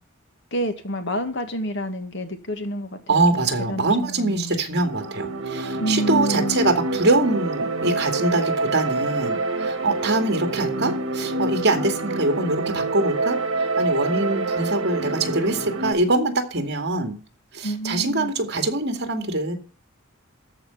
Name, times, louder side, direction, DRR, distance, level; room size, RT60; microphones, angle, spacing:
voice 1, 0.5-4.6 5.8-6.6 17.6-18.3, equal, 60° left, 1.8 m, -29 dB
voice 2, 3.1-13.4 13.8-17.1 17.5-19.5, right 2 dB, 55° right, 2.3 m, -23 dB
sound 1, 4.8-15.9, right 2 dB, 70° right, 1.8 m, -27 dB
14.0 x 5.1 x 7.0 m
head